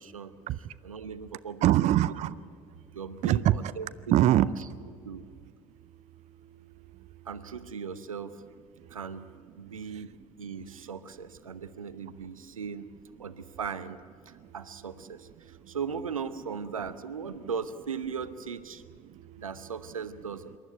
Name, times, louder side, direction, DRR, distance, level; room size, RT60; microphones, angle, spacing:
voice 1, 0.0-0.3 0.8-2.2 2.9-4.5 5.0-5.2 7.2-8.4 8.9-9.3 9.6-12.9 13.2-14.0 14.3-18.8 19.4-20.6, right 6 dB, 80° right, 14 dB, 0.8 m, -38 dB
voice 2, 1.6-2.4 3.2-3.6 4.1-4.5 4.8-5.2 6.4-7.3 8.8-9.0 9.9-10.1 14.3-14.5 15.6-15.8 19.0-19.4, right 13 dB, 40° right, 18 dB, 0.5 m, -26 dB
26.5 x 12.0 x 9.1 m, 2.2 s
figure-of-eight pair, 60°, 17 cm